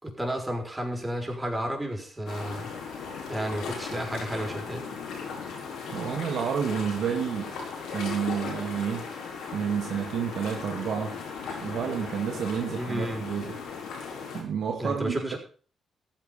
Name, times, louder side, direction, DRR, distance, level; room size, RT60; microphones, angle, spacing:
voice 1, 0.0-2.7 3.3-4.8 12.8-13.3 14.8-15.4, right 1 dB, 15° right, 2 dB, 6.0 m, -32 dB
sound 1, 2.3-14.4, left 5 dB, 80° left, 4.5 m, -37 dB
voice 2, 5.9-7.5 7.9-9.1 9.5-11.2 11.6-13.6 14.3-15.3, right 7 dB, 70° right, 4 dB, 1.9 m, -30 dB
14.5 x 9.2 x 5.7 m, 0.41 s
supercardioid pair, 55°, 0 cm